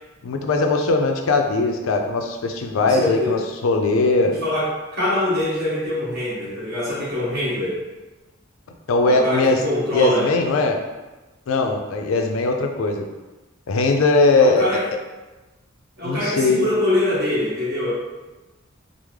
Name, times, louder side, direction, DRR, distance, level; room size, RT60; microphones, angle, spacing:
voice 1, 0.2-4.3 8.9-9.6 9.9-10.8 11.5-13.0 13.7-14.7 16.0-16.6, left 3 dB, 80° left, 4 dB, 0.4 m, -19 dB
voice 2, 2.8-3.4 4.2-7.8 9.0-10.3 14.4-14.8 16.0-17.9, left 1 dB, 50° right, -8 dB, 1.3 m, -24 dB
3.4 x 2.0 x 3.2 m, 1.1 s
head